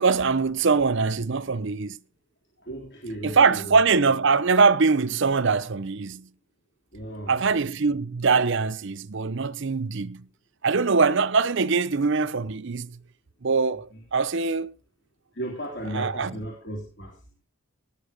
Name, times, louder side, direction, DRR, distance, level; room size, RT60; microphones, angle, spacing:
voice 1, 0.0-2.0 3.2-6.3 7.3-10.3 10.6-13.0 13.4-14.7 15.9-16.4, right 4 dB, 55° right, 0.6 m, -23 dB
voice 2, 2.6-4.1 6.9-7.4 13.9-14.0 15.3-17.2, right 1 dB, 50° left, 3.6 m, -35 dB
19.0 x 7.4 x 5.1 m
head